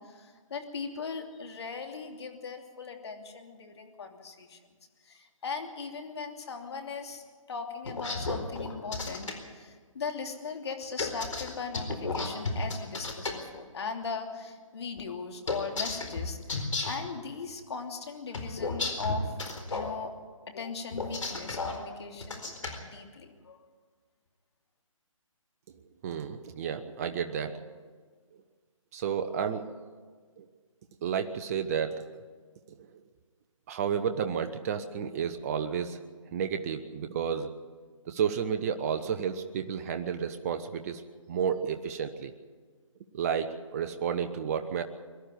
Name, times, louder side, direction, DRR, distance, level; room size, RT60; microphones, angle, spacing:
voice 1, 0.0-4.6 5.0-19.3 19.7-20.1 20.5-22.5 22.8-23.7, left 5 dB, 50° left, 4 dB, 2.9 m, -39 dB
sound 1, 7.8-9.3 11.0-13.3 15.5-17.1 18.3-19.9 20.9-21.8 22.2-22.8, left 3 dB, 65° left, 4.3 m, -33 dB
voice 2, 26.0-27.6 28.9-29.6 30.4-30.5 31.0-32.1 33.7-36.0 36.3-37.5 38.1-41.0 41.3-42.3 43.1-44.8, right 7 dB, 25° right, 7 dB, 0.9 m, -31 dB
23.0 x 12.0 x 9.5 m, 1.5 s
figure-of-eight pair, 150°, 17 cm